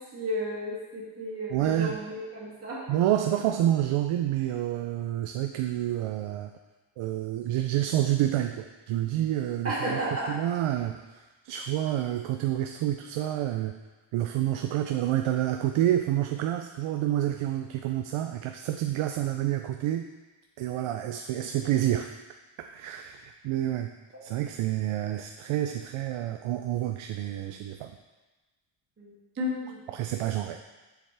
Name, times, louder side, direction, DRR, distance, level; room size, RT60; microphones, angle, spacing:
voice 1, 0.0-2.8 9.6-10.3 29.0-29.8, equal, 30° right, -8 dB, 2.4 m, -33 dB
voice 2, 1.5-2.0 2.9-6.5 7.0-10.0 10.3-13.7 14.1-20.1 20.6-22.1 22.6-23.9 24.2-27.9 29.9-30.6, right 12 dB, 85° right, 6 dB, 0.6 m, -28 dB
7.4 x 6.9 x 3.4 m, 1.2 s
wide cardioid pair, 170°, 48 cm